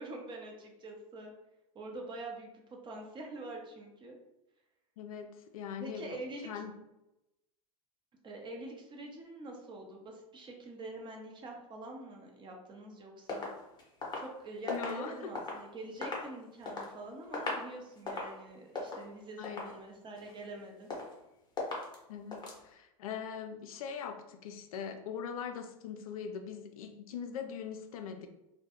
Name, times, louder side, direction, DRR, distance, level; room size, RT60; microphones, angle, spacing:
voice 1, 0.0-1.3 1.7-4.2 5.8-6.5 8.2-13.5 14.1-20.9, right 2 dB, 25° right, 1 dB, 0.6 m, -45 dB
voice 2, 5.0-6.0 6.4-6.7 14.7-15.3 19.4-19.6 22.1-28.3, left 7 dB, 80° left, 6 dB, 0.4 m, -41 dB
sound 1, 13.3-15.6 15.9-16.9 17.2-17.7 18.0-18.4 18.7-19.1 19.4-19.8 20.2-20.6 20.9-21.2 21.6-22.0 22.3-22.6, left 3 dB, 25° left, 0.7 m, -39 dB
2.2 x 2.1 x 2.9 m, 0.91 s
hypercardioid pair, 95°, 18 cm